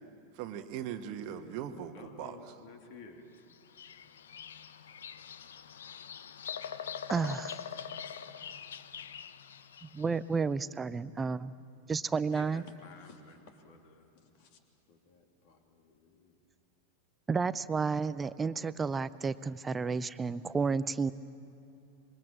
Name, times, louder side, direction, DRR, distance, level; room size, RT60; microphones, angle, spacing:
voice 1, 0.4-2.4, right 9 dB, 45° right, 8 dB, 1.4 m, -39 dB
voice 2, 1.9-3.2 12.3-14.6 14.9-16.3, left 4 dB, 45° left, 4 dB, 3.0 m, -53 dB
Bird vocalization bird call bird song, 3.5-10.1, left 8 dB, 65° left, 0.8 m, -43 dB
voice 3, 7.1-7.6 9.8-11.5 11.9-12.6 17.3-21.1, right 5 dB, 15° right, 16 dB, 0.5 m, -31 dB
26.5 x 23.0 x 7.5 m, 2.8 s
figure-of-eight pair, 90°, 0 cm